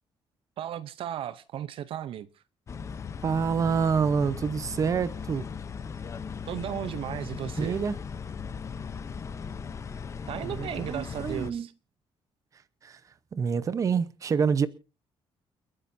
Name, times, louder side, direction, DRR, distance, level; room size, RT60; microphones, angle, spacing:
voice 1, 0.6-2.3 6.5-7.8 10.3-11.7, right 10 dB, 65° right, 0.7 m, -35 dB
sound 1, 2.7-11.5, left 6 dB, 30° left, 0.7 m, -38 dB
voice 2, 3.2-5.5 7.6-8.0 10.4-11.7 12.8-13.0 13.3-14.7, right 6 dB, 30° right, 0.8 m, -27 dB
30.0 x 10.0 x 2.7 m
cardioid pair, 170°, 10 cm